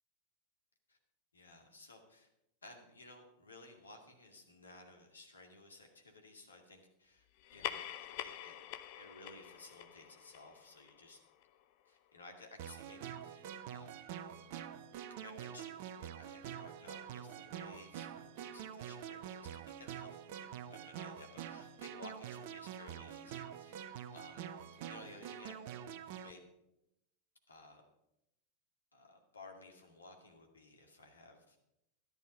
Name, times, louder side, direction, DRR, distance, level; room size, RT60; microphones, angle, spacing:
voice 1, 1.3-2.3 2.6-7.2 7.5-8.6 9.0-11.2 11.9-14.0 15.1-24.5 24.9-26.5 27.5-27.8 28.9-31.6, left 2 dB, 75° left, 3 dB, 2.1 m, -56 dB
sound 1, 7.4-12.3, left 12 dB, 45° left, 0.7 m, -46 dB
sound 2, 12.6-26.3, right 9 dB, 50° right, 0.8 m, -46 dB
12.5 x 11.0 x 5.2 m, 0.87 s
figure-of-eight pair, 90°, 0 cm